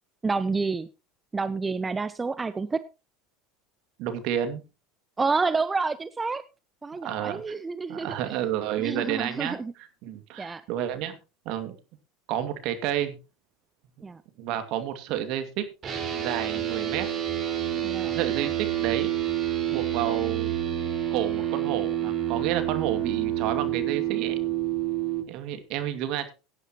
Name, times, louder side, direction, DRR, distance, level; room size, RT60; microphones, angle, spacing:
voice 1, 0.2-0.9 1.3-2.8 5.2-6.4 6.8-8.2 8.8-9.7 10.4-10.6 14.0-14.2 17.8-18.1, right 4 dB, 20° right, 14 dB, 0.7 m, -29 dB
voice 2, 4.0-4.6 7.0-7.4 7.9-11.2 11.5-11.8 12.3-13.2 14.4-15.7 16.1-17.1 17.7-19.1 19.7-20.6 21.1-24.4 25.3-26.3, right 11 dB, 60° right, 9 dB, 2.3 m, -30 dB
sound 1, 15.8-25.2, right 12 dB, 40° right, 4.9 m, -28 dB
17.5 x 9.9 x 3.0 m, 0.29 s
hypercardioid pair, 90°, 0 cm